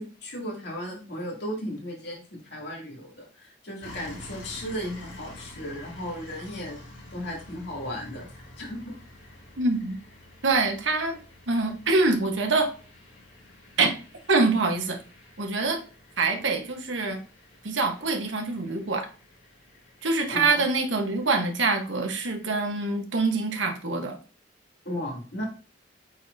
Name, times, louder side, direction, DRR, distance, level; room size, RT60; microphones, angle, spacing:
voice 1, 0.0-6.8 7.1-8.9 20.3-20.7 24.8-25.5, equal, 60° left, -2 dB, 2.6 m, -35 dB
sound 1, 3.8-23.0, left 1 dB, 80° left, 2.4 m, -49 dB
voice 2, 9.6-10.0 10.4-11.2 11.5-12.7 13.8-13.9 14.3-15.0 15.4-15.8 16.2-17.2 17.6-19.1 20.0-24.2, right 3 dB, 90° right, 4 dB, 1.2 m, -25 dB
8.4 x 4.3 x 2.7 m, 0.36 s
head